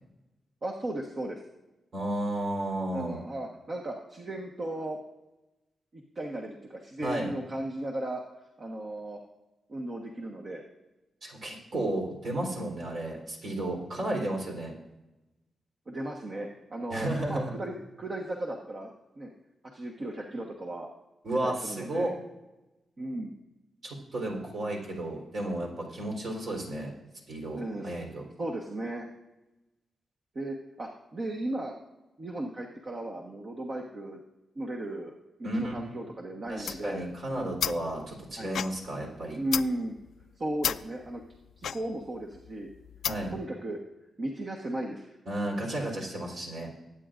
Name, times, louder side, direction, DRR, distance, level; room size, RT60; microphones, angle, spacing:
voice 1, 0.6-1.4 2.9-5.0 5.9-8.2 8.6-9.2 9.7-10.6 15.9-18.9 19.2-19.3 19.7-20.9 21.3-22.1 23.0-23.3 27.5-27.9 28.4-29.1 30.3-31.7 32.2-34.2 34.5-35.1 35.4-37.1 38.4-38.6 39.3-40.0 40.4-41.2 41.6-42.7 43.3-43.8 44.2-45.1, right 1 dB, 40° right, 0 dB, 1.2 m, -35 dB
voice 2, 1.9-3.2 7.0-7.3 11.2-14.7 16.9-17.5 21.2-22.1 23.8-26.9 27.3-28.2 35.4-35.7 36.5-39.4 43.0-43.3 45.3-46.7, right 1 dB, 60° right, 0 dB, 3.7 m, -33 dB
sound 1, 36.5-43.5, left 8 dB, 80° left, 0.3 m, -36 dB
20.5 x 9.1 x 2.5 m, 1.0 s
wide cardioid pair, 115°, 0 cm